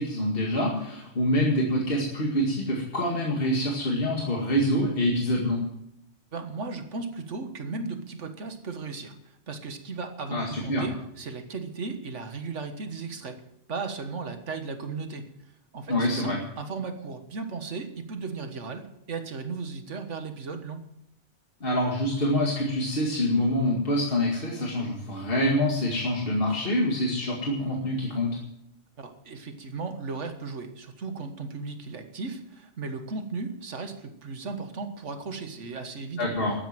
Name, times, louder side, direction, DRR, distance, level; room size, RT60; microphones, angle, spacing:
voice 1, 0.0-5.6 10.3-10.8 15.9-16.4 21.6-28.4 36.2-36.5, left 1 dB, 50° left, -2 dB, 2.4 m, -26 dB
voice 2, 6.3-13.4 13.7-15.3 15.7-20.8 29.0-36.3, right 4 dB, 90° right, 7 dB, 1.8 m, -36 dB
13.0 x 9.6 x 7.5 m, 0.78 s
omnidirectional pair, 1.2 m